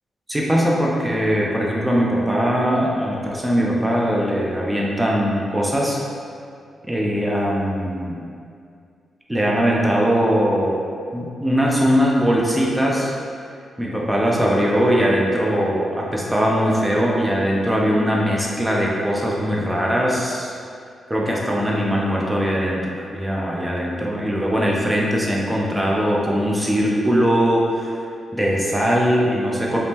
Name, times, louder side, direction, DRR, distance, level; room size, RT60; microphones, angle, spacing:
voice 1, 0.3-6.0 6.9-8.2 9.3-10.8 11.1-13.1 13.8-20.6 21.1-27.9 28.3-29.8, equal, 15° right, -3 dB, 0.6 m, -20 dB
3.0 x 2.7 x 3.5 m, 2.3 s
cardioid pair, 60°, 0 cm